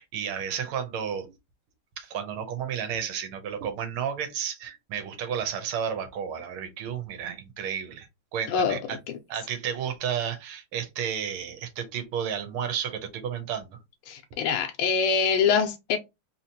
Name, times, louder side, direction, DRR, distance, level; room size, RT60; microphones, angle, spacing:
voice 1, 0.0-1.3 2.0-9.0 9.3-13.8, right 8 dB, 85° right, 1.7 m, -32 dB
voice 2, 8.5-8.8 14.1-16.0, left 6 dB, 85° left, 1.5 m, -24 dB
3.8 x 2.9 x 2.7 m
omnidirectional pair, 2.3 m